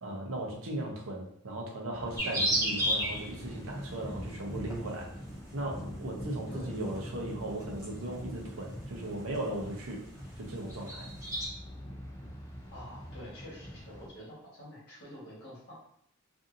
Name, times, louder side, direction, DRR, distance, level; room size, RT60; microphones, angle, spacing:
voice 1, 0.0-5.1 5.5-10.0 10.4-11.1, right 1 dB, 65° right, -1 dB, 0.6 m, -37 dB
Thunder, 1.9-14.1, equal, 15° left, 0.4 m, -43 dB
sound 1, 2.2-3.3 4.7-5.0 6.5-7.0 7.6-7.9 8.5-8.6 9.3-9.4 9.7-9.9 10.2-11.5, equal, 15° right, 0.8 m, -30 dB
voice 2, 12.7-15.7, equal, 50° left, -7 dB, 1.3 m, -47 dB
2.6 x 2.6 x 2.5 m, 0.71 s
head